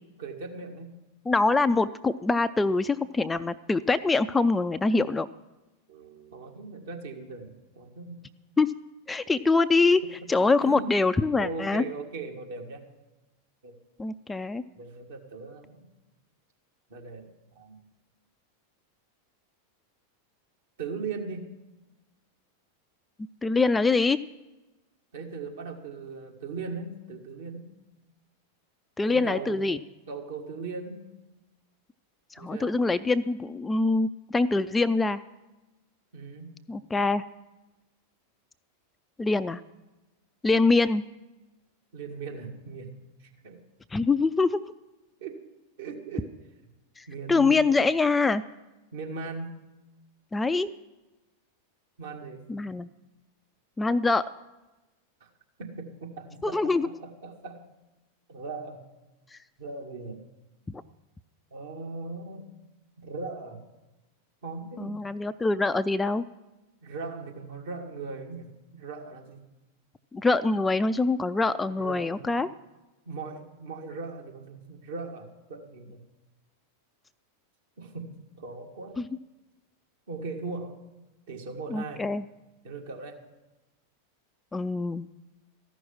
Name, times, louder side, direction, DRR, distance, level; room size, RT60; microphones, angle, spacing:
voice 1, 0.2-0.9 5.9-8.2 9.3-9.5 10.6-10.9 11.3-12.9 13.6-13.7 14.8-15.9 16.9-17.3 17.6-17.8 20.8-21.5 25.1-27.7 29.1-29.7 30.1-31.1 32.4-32.8 36.1-36.6 41.9-42.9 43.2-43.6 45.2-45.4 45.8-46.3 47.1-47.6 48.9-49.6 52.0-52.4 55.2-55.3 55.6-57.7 58.3-58.8 59.6-60.2 61.5-62.5 63.0-63.6 64.4-65.1 66.8-69.4 71.7-72.4 73.1-76.0 77.8-79.0 80.1-80.8 81.3-82.1 82.6-83.2, right 4 dB, 60° right, 1 dB, 1.9 m, -39 dB
voice 2, 1.3-5.3 8.6-8.7 9.1-10.0 10.3-11.8 14.0-14.6 23.4-24.2 29.0-29.8 32.3-35.2 36.7-37.2 39.2-39.6 40.4-41.0 43.9-44.6 47.0-48.4 50.3-50.7 52.5-52.9 53.8-54.2 56.4-56.9 64.8-66.2 70.1-72.5 79.0-79.1 81.7-82.2 84.5-85.0, left 3 dB, 10° left, 12 dB, 0.3 m, -24 dB
14.5 x 6.2 x 9.7 m, 1.1 s
figure-of-eight pair, 90°, 0 cm